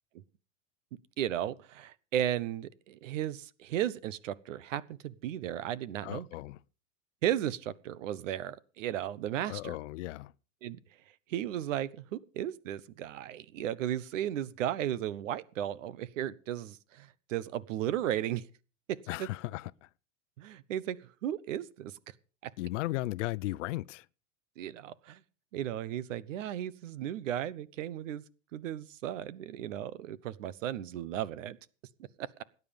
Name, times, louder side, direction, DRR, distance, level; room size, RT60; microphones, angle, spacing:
voice 1, 1.2-6.3 7.2-9.8 10.6-10.8 11.3-18.5 19.2-19.3 20.4-22.1 22.4-22.5 24.6-25.2 25.5-28.2 28.5-31.6 32.2-32.3, right 11 dB, 80° right, 1.2 m, -35 dB
voice 2, 6.0-6.6 9.5-10.3 19.1-19.9 22.6-24.1, left 18 dB, 70° left, 0.7 m, -36 dB
18.5 x 9.6 x 5.3 m
supercardioid pair, 155°, 38 cm